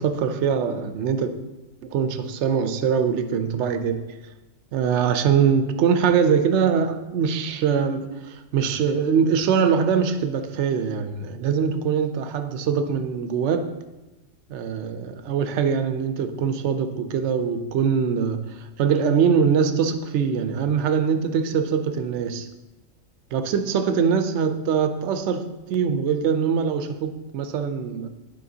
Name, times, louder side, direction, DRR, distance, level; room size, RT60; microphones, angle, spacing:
voice 1, 0.0-1.3 1.8-4.0 4.7-13.7 14.5-22.5 23.3-28.1, right 6 dB, 70° right, 0.9 m, -23 dB
12.0 x 4.4 x 2.7 m
omnidirectional pair, 1.3 m